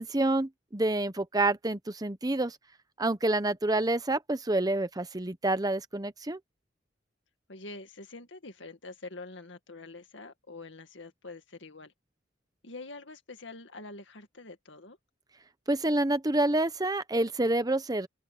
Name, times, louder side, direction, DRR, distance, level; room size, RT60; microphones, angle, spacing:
voice 1, 0.0-2.6 3.0-6.4 15.7-18.1, right 2 dB, 20° right, 1.0 m, -28 dB
voice 2, 7.5-11.9 12.6-15.0, left 3 dB, 75° left, 2.2 m, -45 dB
open air
head